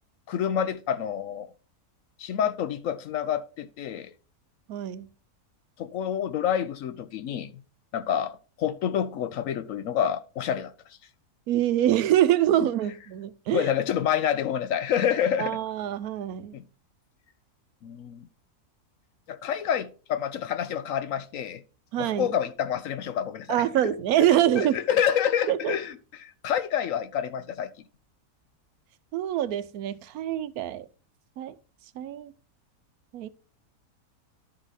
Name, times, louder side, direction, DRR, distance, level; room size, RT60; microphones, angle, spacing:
voice 1, 0.3-1.5 2.2-4.1 5.8-7.6 7.9-10.7 13.5-15.6 16.5-16.6 17.8-18.3 19.3-21.6 22.0-23.6 24.2-27.7, left 9 dB, 70° left, 0.9 m, -28 dB
voice 2, 4.7-5.1 11.5-13.7 15.4-16.5 21.9-22.3 23.5-24.8 25.5-25.7 29.1-30.9 31.4-31.6 32.0-32.3 33.1-33.3, right 12 dB, 75° right, 1.1 m, -25 dB
11.5 x 4.8 x 4.0 m
omnidirectional pair, 1.6 m